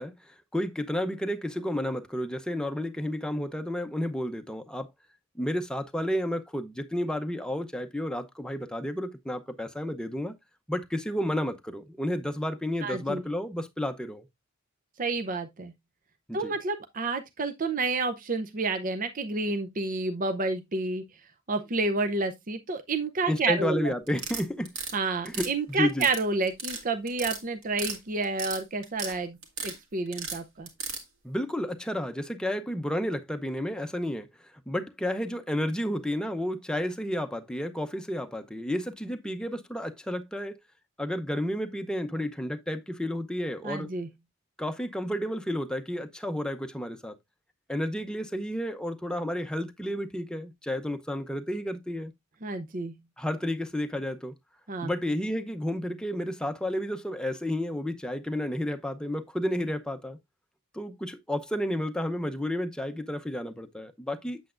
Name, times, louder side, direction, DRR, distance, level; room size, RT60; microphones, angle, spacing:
voice 1, 0.0-4.9 5.4-10.3 10.7-14.3 16.3-16.5 23.3-24.8 25.2-26.1 31.2-40.5 41.0-43.9 44.6-47.2 47.7-52.1 53.2-54.3 54.8-60.2 60.7-64.4, left 1 dB, 5° left, 0.7 m, -31 dB
voice 2, 12.8-13.2 15.0-15.7 16.3-21.0 21.5-23.8 24.9-29.4 29.6-30.7 43.6-44.1 52.4-52.9 54.7-54.9, right 3 dB, 40° right, 0.6 m, -29 dB
sound 1, 24.1-24.9 25.3-26.2 26.5-26.8 27.1-28.0 28.2-29.1 29.4-29.8 30.1-31.0, right 4 dB, 70° right, 2.3 m, -35 dB
8.2 x 7.7 x 2.5 m
head